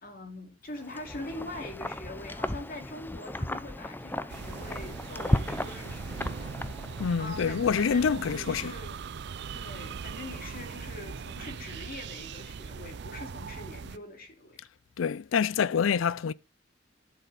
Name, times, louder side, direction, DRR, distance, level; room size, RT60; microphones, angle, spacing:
voice 1, 0.0-6.5 7.2-9.0 9.5-14.6, left 2 dB, 50° left, 2.8 m, -43 dB
Wind, 0.8-7.3, left 1 dB, 10° left, 0.6 m, -34 dB
sound 1, 4.3-14.0, right 5 dB, 60° right, 0.5 m, -40 dB
voice 2, 7.0-8.7 15.0-16.3, left 6 dB, 80° left, 0.4 m, -26 dB
11.0 x 6.9 x 4.1 m
head